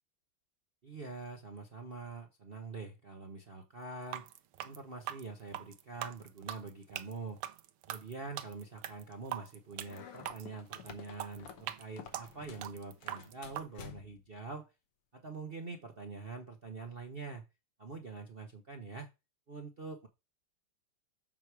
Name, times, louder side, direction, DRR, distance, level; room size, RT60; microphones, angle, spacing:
voice 1, 0.8-4.2 4.6-7.4 7.9-14.7 15.1-17.4 17.8-19.1 19.5-20.1, right 4 dB, 45° right, 3 dB, 0.7 m, -45 dB
sound 1, 4.0-13.7, right 12 dB, 90° right, 1.6 m, -42 dB
sound 2, 9.8-12.7 13.0-14.3, left 7 dB, 90° left, 2.0 m, -51 dB
7.6 x 4.7 x 4.8 m, 0.25 s
omnidirectional pair, 2.4 m